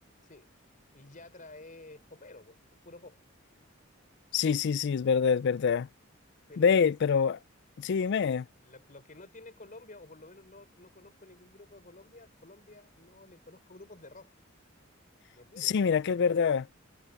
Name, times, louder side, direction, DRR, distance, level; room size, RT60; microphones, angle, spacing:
voice 1, 0.9-2.6 2.8-3.2 6.5-6.8 8.6-14.3 15.4-16.4, left 2 dB, 40° left, 4.8 m, -51 dB
voice 2, 4.3-5.9 6.6-7.4 7.8-8.5 15.6-16.6, left 6 dB, 55° left, 0.4 m, -25 dB
head